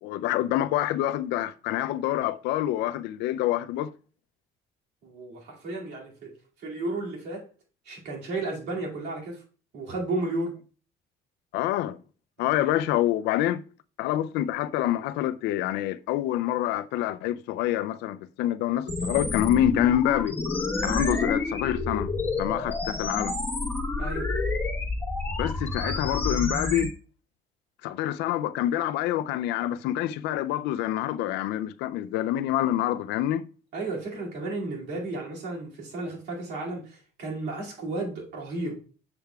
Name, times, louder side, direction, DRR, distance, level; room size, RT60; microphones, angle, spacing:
voice 1, 0.0-3.9 11.5-12.0 12.4-13.6 14.0-20.4 20.8-22.1 22.4-23.4 25.4-26.9 27.8-33.5, left 13 dB, 90° left, 0.4 m, -27 dB
voice 2, 5.0-6.3 6.6-7.4 7.9-9.4 9.7-10.6 12.5-12.8 24.0-24.3 33.7-38.7, right 2 dB, 75° right, 2.3 m, -33 dB
sound 1, 18.9-26.9, left 3 dB, 10° left, 1.1 m, -29 dB
6.8 x 6.7 x 2.3 m
cardioid pair, 110°, 17 cm